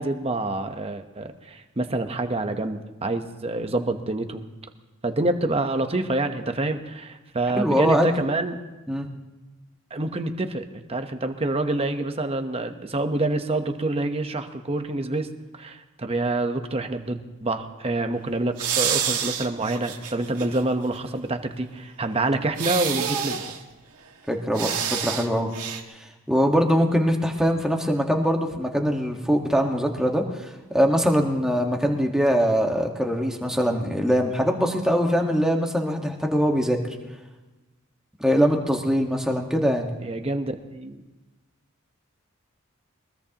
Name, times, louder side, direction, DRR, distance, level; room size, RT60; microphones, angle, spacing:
voice 1, 0.0-4.4 5.0-8.6 9.9-15.3 15.5-23.4 40.0-41.0, right 2 dB, 25° right, 6 dB, 1.0 m, -27 dB
voice 2, 7.5-8.1 8.9-9.1 24.3-25.5 26.3-30.2 30.7-36.8 38.2-39.9, equal, 5° right, 1 dB, 1.5 m, -22 dB
sound 1, 18.6-20.6 21.0-21.1 22.6-23.6 24.5-25.3 25.5-25.8, right 8 dB, 85° right, 1.8 m, -27 dB
22.5 x 21.0 x 3.0 m, 1.1 s
head